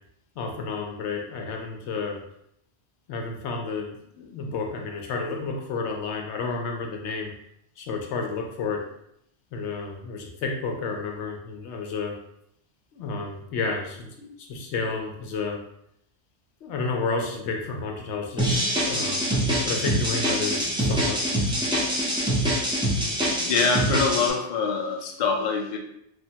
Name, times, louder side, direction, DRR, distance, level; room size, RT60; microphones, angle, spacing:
voice 1, 0.4-2.2 3.1-7.3 7.8-8.8 9.5-12.1 12.9-15.6 16.6-19.3 19.7-21.2, left 4 dB, 85° left, 1 dB, 0.9 m, -31 dB
sound 1, 18.4-24.3, equal, 5° right, 0.4 m, -24 dB
voice 2, 23.5-25.8, left 4 dB, 55° left, 2 dB, 0.5 m, -24 dB
3.2 x 2.1 x 2.8 m, 0.75 s
omnidirectional pair, 1.1 m